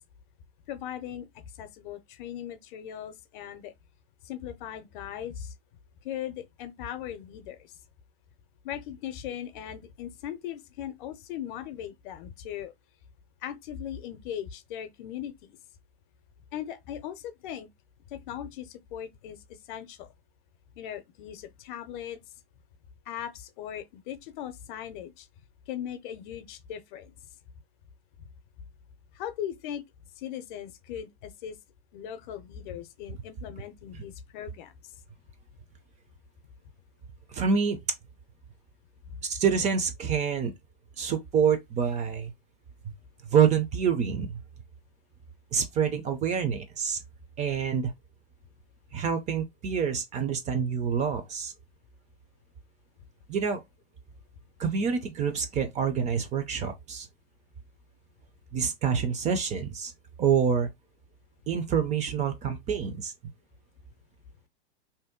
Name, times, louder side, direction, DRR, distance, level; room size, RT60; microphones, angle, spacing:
voice 1, 0.7-1.3 1.6-3.7 4.2-5.5 6.0-7.7 8.6-12.7 13.4-15.6 16.5-17.7 18.1-19.4 19.7-20.1 20.8-22.2 23.1-25.3 25.7-27.1 29.1-29.8 30.2-31.6 31.9-34.7 39.1-39.2, left 10 dB, 55° left, 0.6 m, -39 dB
voice 2, 37.3-37.8 39.2-40.5 41.0-42.3 43.3-44.4 45.5-47.0 47.4-47.9 48.9-51.5 53.3-53.6 54.6-57.1 58.5-59.9 60.2-60.7 61.5-63.1, right 7 dB, 25° right, 0.5 m, -27 dB
2.7 x 2.1 x 3.5 m
hypercardioid pair, 110°, 31 cm